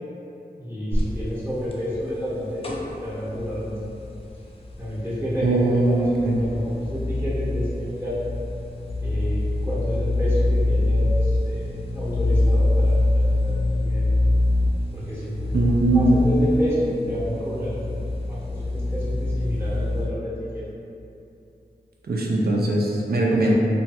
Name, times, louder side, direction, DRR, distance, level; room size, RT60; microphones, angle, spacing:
voice 1, 0.6-2.6 3.0-3.7 4.8-6.1 6.4-8.2 9.0-14.0 14.9-15.5 15.9-17.8 18.2-20.3, equal, 15° right, -9 dB, 0.8 m, -30 dB
sound 1, 0.9-20.1, left 2 dB, 35° left, 0.4 m, -25 dB
voice 2, 5.4-6.4 15.5-16.3 22.1-23.5, right 2 dB, 70° right, -2 dB, 0.4 m, -20 dB
3.1 x 2.3 x 2.7 m, 2.7 s
wide cardioid pair, 75°, 17 cm